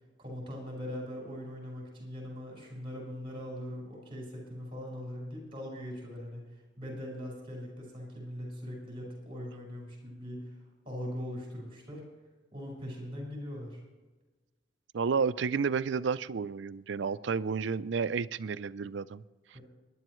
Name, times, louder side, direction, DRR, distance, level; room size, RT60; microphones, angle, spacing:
voice 1, 0.2-12.0 12.5-13.8 19.5-19.6, equal, 30° right, -1 dB, 4.8 m, -41 dB
voice 2, 14.9-19.2, right 5 dB, 70° right, 16 dB, 0.4 m, -31 dB
23.0 x 10.5 x 3.1 m, 1.2 s
head